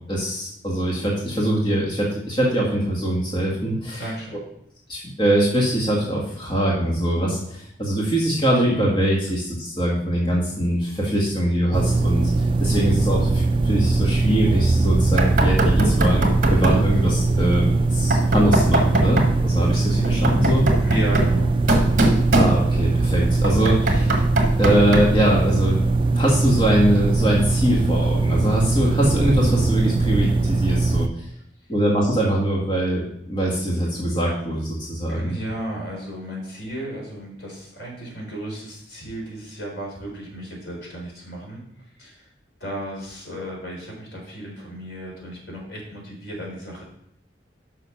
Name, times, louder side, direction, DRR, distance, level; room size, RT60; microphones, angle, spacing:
voice 1, 0.1-4.0 4.9-20.7 22.3-24.2 24.6-25.8 26.2-31.1 31.7-35.3, right 1 dB, 25° left, -3 dB, 1.6 m, -22 dB
voice 2, 3.9-4.4 20.8-21.6 35.1-41.6 42.0-42.3 42.6-46.8, right 1 dB, 85° left, -2 dB, 3.9 m, -34 dB
sound 1, 11.7-31.1, right 3 dB, 30° right, 0.3 m, -21 dB
Knock, 15.2-16.9 18.1-19.4 20.0-22.9 23.4-25.2, right 1 dB, 50° right, 1.5 m, -22 dB
6.6 x 5.9 x 5.7 m, 0.71 s
head